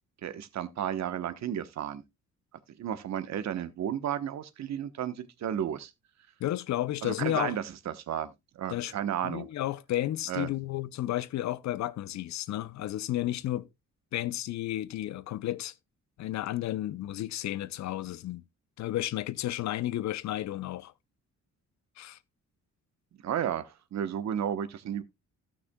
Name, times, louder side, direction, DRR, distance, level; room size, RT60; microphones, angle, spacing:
voice 1, 0.2-2.0 2.8-5.9 7.0-9.5 10.3-10.5 23.2-25.0, right 9 dB, 65° right, 1.1 m, -33 dB
voice 2, 6.4-7.6 8.7-8.9 9.2-13.7 14.1-15.7 16.2-18.4 18.8-20.9 22.0-22.2, left 14 dB, 65° left, 0.6 m, -32 dB
16.5 x 5.9 x 2.2 m
cardioid pair, 90°, 30 cm